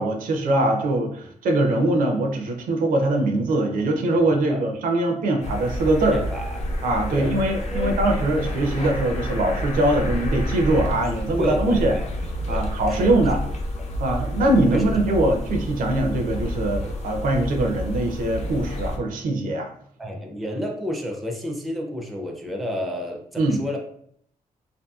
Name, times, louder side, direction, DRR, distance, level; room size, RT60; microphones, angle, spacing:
voice 1, 0.0-6.2 6.8-12.0 12.5-13.4 14.0-19.7 23.4-23.6, right 1 dB, 75° right, 4 dB, 0.5 m, -22 dB
sound 1, 5.4-19.0, equal, 50° left, 0.5 m, -29 dB
voice 2, 6.1-6.6 7.1-7.4 7.7-8.0 11.4-12.1 12.5-12.6 12.9-13.1 14.7-15.0 20.0-23.8, equal, ahead, 1 dB, 0.4 m, -30 dB
2.6 x 2.6 x 2.3 m, 0.66 s
cardioid pair, 125°, 14 cm